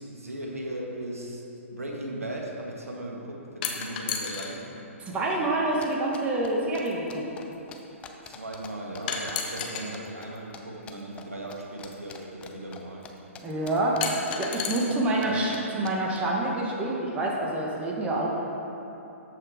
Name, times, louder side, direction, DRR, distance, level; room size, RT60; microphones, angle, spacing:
voice 1, 0.0-4.6 8.3-13.0 15.1-15.5, right 1 dB, 85° right, -1 dB, 1.5 m, -37 dB
Pencil Drop, 3.6-4.5 5.7-5.8 9.1-9.9 11.3-11.4 14.0-14.8, left 7 dB, 40° left, 1.0 m, -31 dB
voice 2, 5.0-7.3 13.4-14.0 14.4-18.3, right 2 dB, 15° right, -3 dB, 1.2 m, -27 dB
sound 1, 5.8-8.7 8.9-10.6 10.9-11.2 11.5-13.1 13.4-15.0 15.2-15.3 15.5-15.6 15.8-16.2, left 7 dB, 15° left, 0.5 m, -45 dB
13.5 x 5.7 x 3.5 m, 3.0 s
figure-of-eight pair, 125°, 8 cm